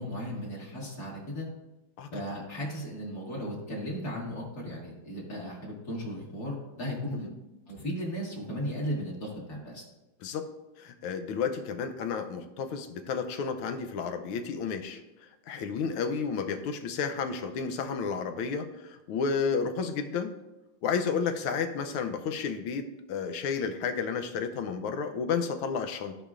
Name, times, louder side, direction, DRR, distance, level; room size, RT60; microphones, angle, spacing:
voice 1, 0.0-1.5 2.1-7.3 7.7-9.9, equal, 45° left, -5 dB, 2.6 m, -36 dB
voice 2, 10.8-20.3 20.8-26.2, left 6 dB, 80° left, 7 dB, 1.5 m, -32 dB
15.0 x 5.0 x 2.5 m, 1.0 s
omnidirectional pair, 2.3 m